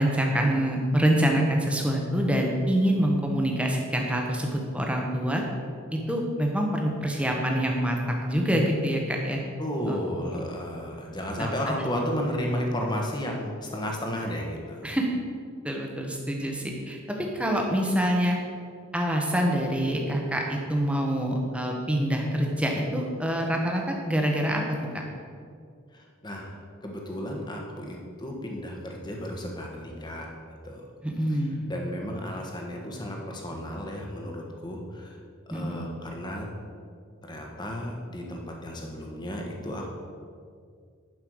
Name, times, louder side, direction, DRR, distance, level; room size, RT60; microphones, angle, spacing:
voice 1, 0.0-5.4 5.9-9.4 9.9-10.0 11.4-11.5 14.8-15.1 15.6-18.4 18.9-24.6 24.9-25.0 31.0-31.7 35.5-35.9, equal, 5° right, 1 dB, 1.2 m, -26 dB
voice 2, 9.6-14.8 25.9-26.5 26.8-30.3 30.6-30.8 31.7-35.2 35.5-36.5 37.2-39.9, equal, 20° left, 0 dB, 1.4 m, -33 dB
11.0 x 5.5 x 6.4 m, 2.2 s
head